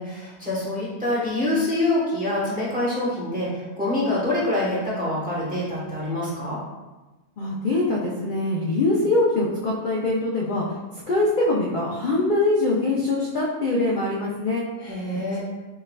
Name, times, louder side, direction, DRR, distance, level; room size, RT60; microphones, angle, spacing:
voice 1, 0.0-6.6 14.8-15.4, left 1 dB, 5° right, -7 dB, 0.9 m, -25 dB
voice 2, 7.4-10.6 11.1-14.7, left 2 dB, 55° left, -5 dB, 0.6 m, -23 dB
6.3 x 2.3 x 2.2 m, 1.2 s
omnidirectional pair, 1.4 m